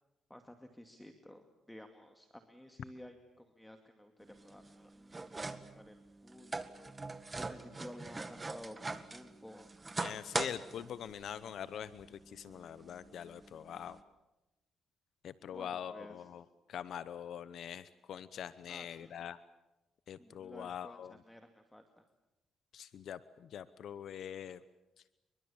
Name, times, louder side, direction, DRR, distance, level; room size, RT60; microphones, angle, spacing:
voice 1, 0.3-6.9 7.4-9.7 15.5-16.2 18.7-19.3 20.2-22.0, left 1 dB, 5° left, 6 dB, 2.3 m, -53 dB
sound 1, 4.2-14.0, right 3 dB, 25° right, 1.8 m, -43 dB
voice 2, 10.0-14.0 15.2-19.4 20.1-21.2 22.7-24.6, left 9 dB, 65° left, 15 dB, 0.9 m, -44 dB
28.5 x 23.5 x 7.2 m, 1.0 s
cardioid pair, 90°, 0 cm